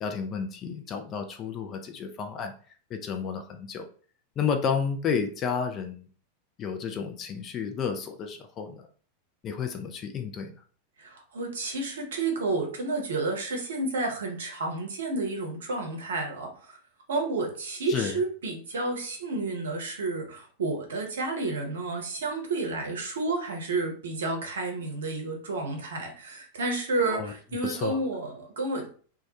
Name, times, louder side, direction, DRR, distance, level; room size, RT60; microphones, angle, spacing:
voice 1, 0.0-2.5 2.9-3.9 4.4-6.1 6.6-8.8 9.4-10.6 17.9-18.1 27.1-27.3 27.6-28.0, left 6 dB, 30° left, 5 dB, 0.4 m, -31 dB
voice 2, 11.0-16.8 17.1-28.9, right 3 dB, 65° right, 2 dB, 0.6 m, -31 dB
2.2 x 2.1 x 2.8 m, 0.42 s
figure-of-eight pair, 90°, 0 cm